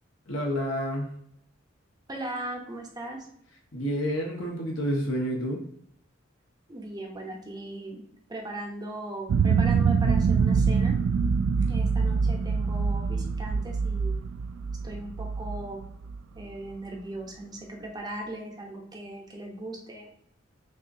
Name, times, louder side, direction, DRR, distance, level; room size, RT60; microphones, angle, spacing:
voice 1, 0.3-1.1 3.7-5.6, equal, 70° left, 0 dB, 1.1 m, -29 dB
voice 2, 2.1-3.3 6.7-8.0 8.3-10.9 11.7-14.2 14.8-15.8 16.3-20.1, right 1 dB, 20° right, 1 dB, 0.7 m, -38 dB
sound 1, 9.3-16.4, right 5 dB, 80° right, 0.3 m, -25 dB
6.0 x 2.6 x 2.6 m, 0.69 s
head